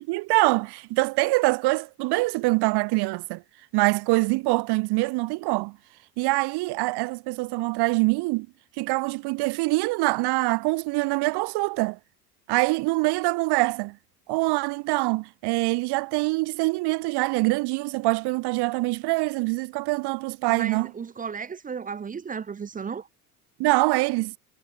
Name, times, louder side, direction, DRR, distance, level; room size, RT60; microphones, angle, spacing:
voice 1, 0.0-3.4 3.7-5.8 6.2-8.5 8.8-12.0 12.5-14.0 14.3-20.9 23.6-24.3, right 23 dB, 55° right, 1.4 m, -24 dB
voice 2, 20.5-23.1, right 6 dB, 20° right, 0.6 m, -34 dB
hypercardioid pair, 75°, 46 cm